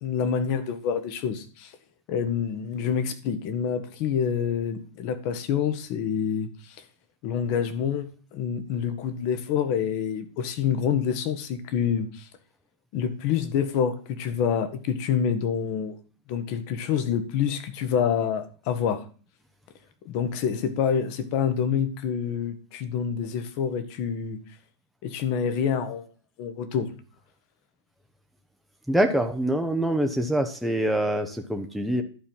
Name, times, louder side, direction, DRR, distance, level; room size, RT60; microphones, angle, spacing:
voice 1, 0.0-1.7 2.1-6.5 7.2-12.2 12.9-16.0 16.3-19.0 20.0-24.4 25.0-26.1 26.4-26.9, left 7 dB, 45° left, 10 dB, 1.6 m, -27 dB
voice 2, 28.9-32.0, right 1 dB, ahead, 4 dB, 0.9 m, -25 dB
11.0 x 4.6 x 7.2 m, 0.39 s
hypercardioid pair, 135°, 15 cm